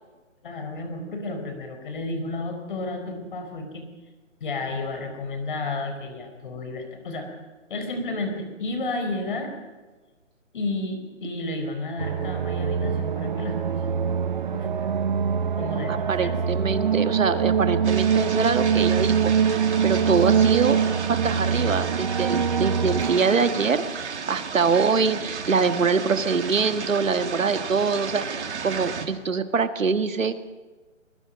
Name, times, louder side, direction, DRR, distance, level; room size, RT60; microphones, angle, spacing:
voice 1, 0.4-3.8 4.4-7.3 7.7-9.5 10.5-13.9 14.5-15.0 15.5-16.4, left 2 dB, 40° left, 6 dB, 4.5 m, -32 dB
sound 1, 12.0-24.0, right 7 dB, 40° right, 0.9 m, -24 dB
voice 2, 15.9-20.8 21.1-30.3, right 5 dB, 80° right, 9 dB, 1.8 m, -24 dB
sound 2, 17.8-29.1, right 5 dB, 60° right, 2.6 m, -33 dB
23.0 x 22.0 x 5.3 m, 1.3 s
hypercardioid pair, 165°, 38 cm